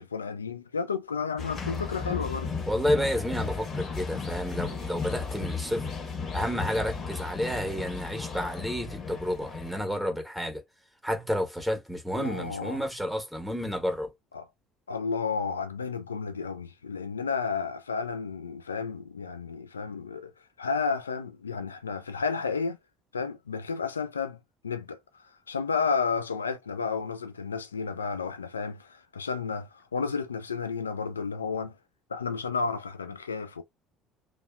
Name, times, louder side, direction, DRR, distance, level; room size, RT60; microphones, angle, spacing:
voice 1, 0.0-2.5 12.1-12.8 14.3-14.5 14.9-20.3 20.6-22.8 23.1-24.4 24.6-31.8 32.1-33.6, left 5 dB, 90° left, 0.3 m, -32 dB
sound 1, 1.4-9.8, left 5 dB, 50° left, 1.2 m, -35 dB
voice 2, 2.7-5.9 6.3-10.6 11.0-14.1, equal, ahead, 1.1 m, -30 dB
2.7 x 2.2 x 2.2 m
hypercardioid pair, 60°, 0 cm